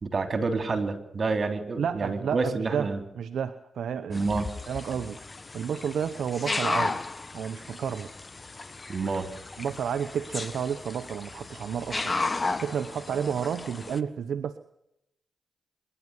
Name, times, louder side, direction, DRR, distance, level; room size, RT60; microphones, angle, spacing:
voice 1, 0.0-3.0 4.1-4.5 8.9-9.3, right 4 dB, 50° right, 7 dB, 3.5 m, -28 dB
voice 2, 1.8-2.9 3.2-4.3 4.7-5.2 5.5-7.0 7.3-8.1 9.6-12.1 12.6-14.6, right 7 dB, 75° right, 10 dB, 0.9 m, -31 dB
sound 1, 4.1-14.0, left 3 dB, 35° left, 1.3 m, -34 dB
25.5 x 11.0 x 9.7 m, 0.80 s
supercardioid pair, 50°, 0 cm